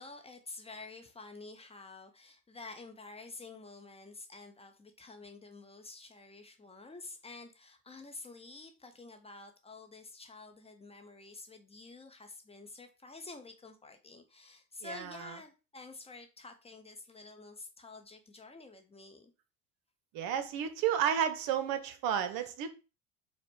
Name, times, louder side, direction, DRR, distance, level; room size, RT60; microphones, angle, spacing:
voice 1, 0.0-19.3, left 3 dB, 15° left, 0.6 m, -49 dB
voice 2, 14.8-15.2 20.1-22.7, right 9 dB, 60° right, 0.8 m, -32 dB
4.1 x 2.2 x 4.3 m
hypercardioid pair, 85°, 38 cm